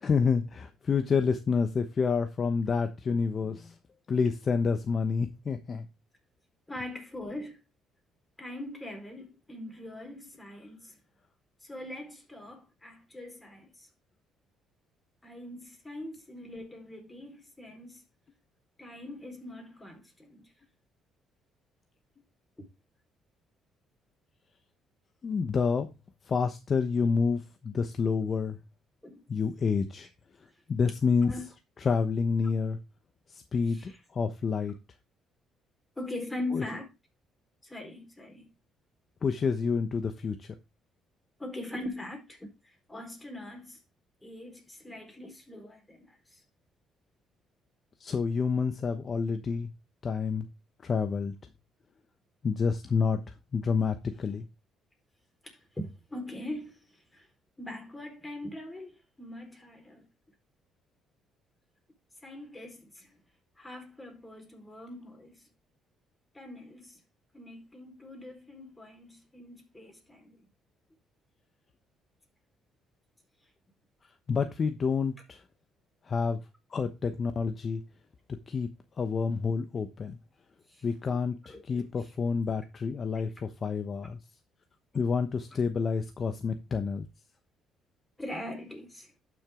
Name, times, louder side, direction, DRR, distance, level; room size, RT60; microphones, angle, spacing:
voice 1, 0.0-3.7 4.1-5.8 25.2-25.9 26.3-28.6 29.3-30.1 30.7-31.3 31.8-32.8 33.3-34.7 36.5-36.6 39.2-40.5 48.0-49.7 50.0-50.5 50.8-51.3 52.4-53.2 53.5-54.5 74.3-75.4 76.1-76.4 76.7-77.8 78.5-78.7 79.0-80.2 80.8-84.2 84.9-87.1, left 5 dB, 40° left, 1.0 m, -28 dB
voice 2, 6.7-7.6 8.4-11.0 11.6-13.9 15.2-18.0 18.8-20.5 22.6-22.7 29.0-29.2 31.2-31.4 33.7-34.0 36.0-36.9 37.6-38.5 41.4-43.8 44.2-46.4 55.4-57.3 57.6-60.0 62.2-63.2 63.6-65.5 66.3-67.0 67.3-70.4 80.7-82.4 88.2-89.1, left 1 dB, 10° left, 4.4 m, -42 dB
12.0 x 6.2 x 3.7 m
cardioid pair, 85°, 0 cm